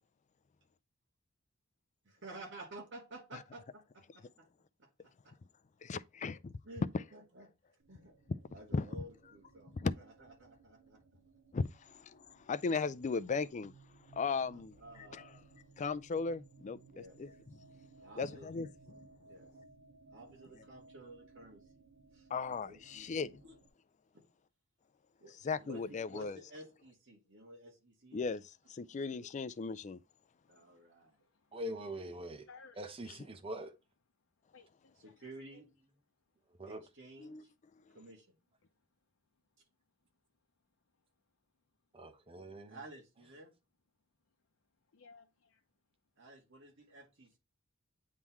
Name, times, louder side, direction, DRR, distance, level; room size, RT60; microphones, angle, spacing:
voice 1, 2.0-4.3 5.2-5.3 6.7-7.5 7.9-8.1 8.5-9.7 10.0-11.0 14.5-15.5 16.9-17.2 18.0-18.5 19.3-19.5 20.1-21.6 22.1-23.5 24.1-24.2 25.2-28.2 29.2-29.3 30.5-31.2 35.0-35.7 36.7-37.5 37.9-38.3 42.7-43.5 46.2-47.4, right 2 dB, 60° right, 2.1 m, -53 dB
voice 2, 5.8-6.5 6.9-7.0 8.3-8.4 8.7-8.9 9.8-9.9 11.5-13.7 14.1-15.2 15.8-16.8 17.2-17.3 18.2-18.7 22.3-23.3 25.4-26.4 28.1-28.4 28.7-30.0 37.2-37.4, left 4 dB, 35° left, 0.4 m, -36 dB
sound 1, 7.8-23.7, right 3 dB, 85° right, 0.9 m, -61 dB
voice 3, 30.4-31.6 32.4-33.2 34.5-35.6 38.6-38.7 44.9-45.6, left 4 dB, 70° left, 0.7 m, -61 dB
voice 4, 31.5-32.5 32.8-33.7 36.6-36.8 41.9-42.8, equal, 25° right, 0.9 m, -43 dB
8.4 x 3.8 x 3.0 m
head